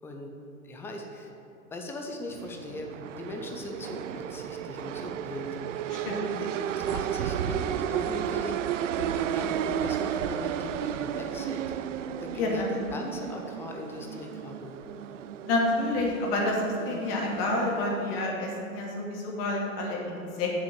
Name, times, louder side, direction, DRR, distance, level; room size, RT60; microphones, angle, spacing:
voice 1, 0.0-0.3 0.6-1.3 1.7-2.9 3.2-5.6 6.4-6.5 6.9-8.6 9.0-11.7 12.2-12.6 12.9-14.7, left 1 dB, 5° left, 2 dB, 0.4 m, -39 dB
sound 1, 2.3-18.2, right 9 dB, 60° right, 0.5 m, -33 dB
voice 2, 12.4-12.9 15.4-20.5, left 2 dB, 40° left, -2 dB, 2.4 m, -29 dB
7.2 x 6.2 x 7.7 m, 2.6 s
figure-of-eight pair, 105°, 43 cm